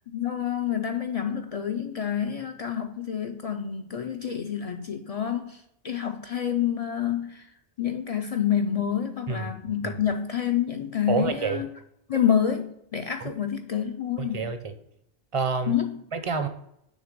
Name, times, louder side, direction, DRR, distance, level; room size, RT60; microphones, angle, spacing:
voice 1, 0.1-7.5 7.8-11.7 12.1-14.4 15.7-16.0, left 9 dB, 50° left, 6 dB, 0.4 m, -28 dB
voice 2, 11.1-11.6 13.2-13.3 14.2-14.7 15.3-15.8 16.1-16.5, right 5 dB, 40° right, 8 dB, 0.6 m, -28 dB
6.3 x 3.2 x 5.1 m, 0.75 s
omnidirectional pair, 1.0 m